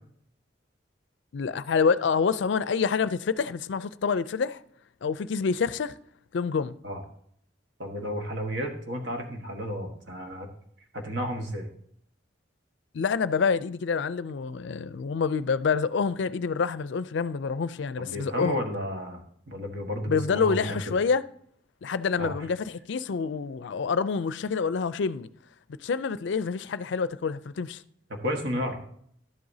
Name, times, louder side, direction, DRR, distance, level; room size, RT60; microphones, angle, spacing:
voice 1, 1.3-4.6 5.0-5.9 6.3-6.8 12.9-18.6 20.1-21.3 21.8-25.3 25.8-27.8, left 5 dB, 70° left, 0.4 m, -27 dB
voice 2, 7.8-10.5 10.9-11.7 18.0-20.8 22.2-22.3 28.1-28.8, equal, 70° right, 1.5 m, -32 dB
12.0 x 7.8 x 2.7 m
head